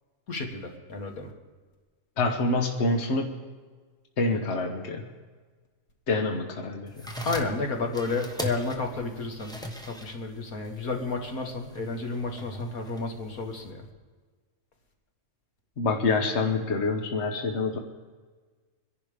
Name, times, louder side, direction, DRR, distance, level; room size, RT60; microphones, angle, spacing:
voice 1, 0.3-1.3 7.2-9.6 9.8-13.9, left 3 dB, 80° left, 3 dB, 2.3 m, -31 dB
voice 2, 2.2-3.3 4.2-5.0 6.1-7.1 15.8-17.8, left 3 dB, 50° left, 3 dB, 1.5 m, -26 dB
sound 1, 6.9-13.7, equal, 5° left, 1.2 m, -40 dB
25.0 x 11.0 x 5.1 m, 1.4 s
omnidirectional pair, 1.5 m